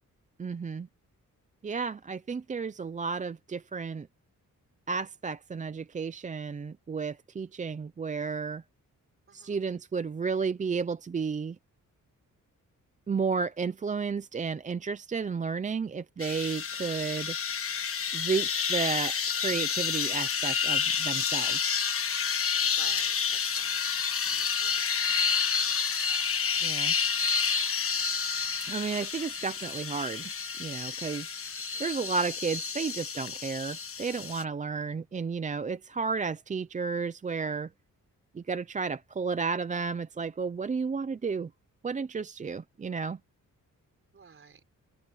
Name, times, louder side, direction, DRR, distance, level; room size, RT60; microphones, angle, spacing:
voice 1, 0.4-0.9 1.6-4.1 4.9-8.6 9.3-11.6 13.1-17.4 18.1-21.8 26.6-26.9 27.2-27.4 28.7-30.3 30.6-31.3 31.8-37.7 38.3-41.5 41.8-43.2, right 5 dB, 25° right, 0.5 m, -32 dB
voice 2, 9.3-9.6 16.9-17.0 22.8-23.8 24.2-24.8 25.2-25.8 31.7-31.9 44.1-44.6, right 5 dB, 40° right, 4.0 m, -53 dB
sound 1, 16.2-34.4, left 6 dB, 45° left, 1.3 m, -29 dB
open air
wide cardioid pair, 150°, 32 cm